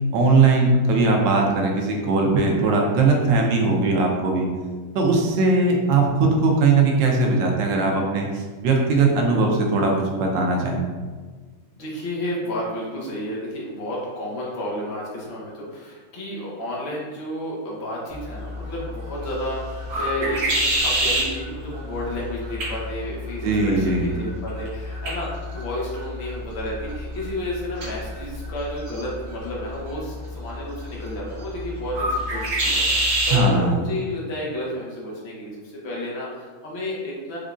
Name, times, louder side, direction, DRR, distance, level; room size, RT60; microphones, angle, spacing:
voice 1, 0.1-4.5 4.9-8.3 8.6-10.8 23.4-24.1 33.3-33.8, right 3 dB, 85° right, 0 dB, 1.3 m, -19 dB
voice 2, 11.8-37.4, left 1 dB, 50° left, -5 dB, 0.8 m, -31 dB
sound 1, 18.1-33.5, right 1 dB, 60° right, 1.3 m, -28 dB
4.9 x 2.2 x 2.4 m, 1.4 s
omnidirectional pair, 2.0 m